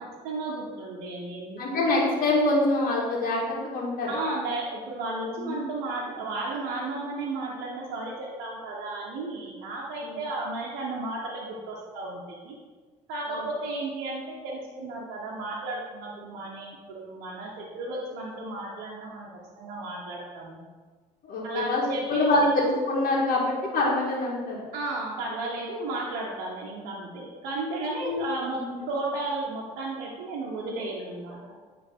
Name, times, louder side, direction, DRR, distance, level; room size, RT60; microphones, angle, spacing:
voice 1, 0.0-1.6 4.1-12.6 13.1-19.3 19.6-20.6 21.4-22.4 24.7-28.6 28.9-31.4, right 2 dB, 75° right, -3 dB, 1.0 m, -34 dB
voice 2, 1.6-4.1 5.3-5.5 10.0-10.1 13.3-13.4 21.2-21.8 22.1-24.6 28.0-28.2 28.5-28.8, left 2 dB, 55° left, -4 dB, 1.7 m, -25 dB
8.9 x 3.4 x 3.6 m, 1.5 s
hypercardioid pair, 65°, 17 cm